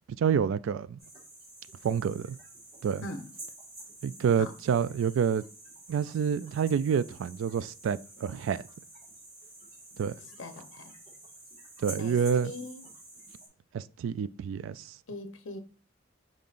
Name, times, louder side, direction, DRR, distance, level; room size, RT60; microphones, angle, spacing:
voice 1, 0.2-1.0 1.8-2.4 2.8-3.0 4.0-5.4 5.9-8.6 10.0-10.1 11.8-12.5 13.7-14.8, right 7 dB, 80° right, 0.3 m, -28 dB
sound 1, 1.0-13.5, right 2 dB, 35° right, 1.8 m, -49 dB
voice 2, 10.4-10.9 12.0-12.2 12.4-12.8 15.1-15.6, left 2 dB, 70° left, 0.8 m, -40 dB
5.4 x 3.8 x 2.5 m
head